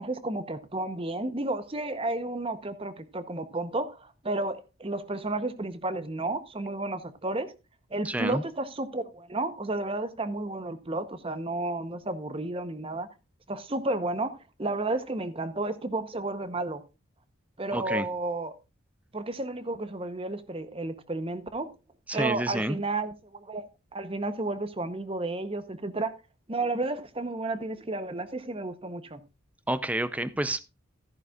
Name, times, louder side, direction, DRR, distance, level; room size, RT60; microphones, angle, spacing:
voice 1, 0.0-7.5 7.9-13.1 13.5-16.8 17.6-18.5 19.1-21.7 22.1-23.6 23.9-26.1 26.5-29.2, right 2 dB, 25° right, 0.8 m, -32 dB
voice 2, 8.0-8.4 17.7-18.1 22.1-22.8 29.7-30.6, right 1 dB, 5° right, 0.5 m, -29 dB
14.0 x 10.5 x 2.4 m
head